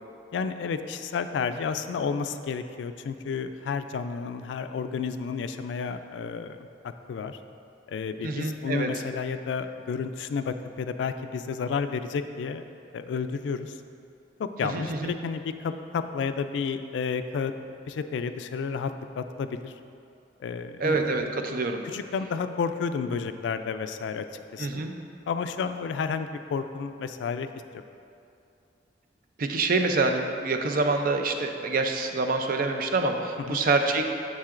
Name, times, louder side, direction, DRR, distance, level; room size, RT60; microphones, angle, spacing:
voice 1, 0.3-6.6 7.1-7.4 7.9-12.6 12.9-13.7 14.4-17.5 17.9-19.7 20.4-20.8 21.8-24.2 24.5-24.8 25.3-27.5 33.5-33.6, left 5 dB, 80° left, 10 dB, 0.3 m, -31 dB
voice 2, 8.2-8.9 14.6-15.1 20.8-21.8 24.6-24.9 29.4-34.1, right 3 dB, 50° right, 5 dB, 0.5 m, -26 dB
Piano, 20.8-21.8, right 1 dB, 10° left, 0.6 m, -38 dB
7.3 x 6.8 x 2.5 m, 2.6 s
head